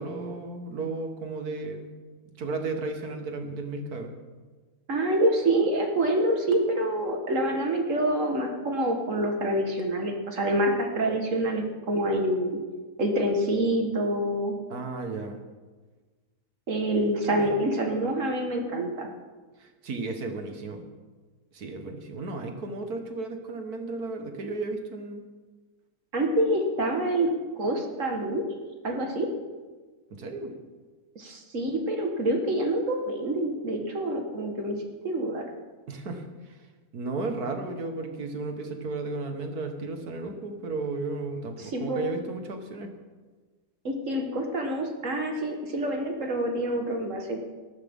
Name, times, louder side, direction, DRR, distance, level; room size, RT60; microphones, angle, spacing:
voice 1, 0.0-1.9 2.4-4.1 12.1-12.2 14.7-15.4 17.3-17.6 19.6-20.8 21.5-25.2 30.1-30.5 35.9-36.6 36.9-42.9, right 3 dB, 85° right, 5 dB, 1.9 m, -34 dB
voice 2, 4.9-12.6 13.0-14.6 16.7-19.1 26.1-27.3 27.6-28.4 28.8-29.3 31.2-34.8 35.0-35.4 41.6-42.1 43.8-47.4, right 1 dB, 55° right, 2 dB, 1.9 m, -26 dB
18.5 x 14.0 x 3.7 m, 1.3 s
omnidirectional pair, 1.6 m